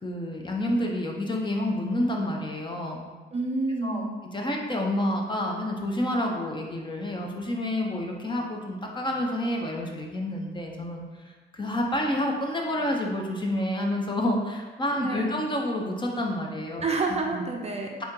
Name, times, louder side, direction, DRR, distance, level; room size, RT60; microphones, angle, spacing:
voice 1, 0.0-3.1 3.8-4.0 4.3-11.0 11.5-16.8 17.3-17.4, left 1 dB, 25° left, 0 dB, 0.7 m, -29 dB
voice 2, 3.3-4.2 15.0-15.3 16.8-18.0, right 3 dB, 30° right, 1 dB, 0.5 m, -28 dB
4.2 x 2.8 x 3.7 m, 1.3 s
cardioid pair, 90°, 20 cm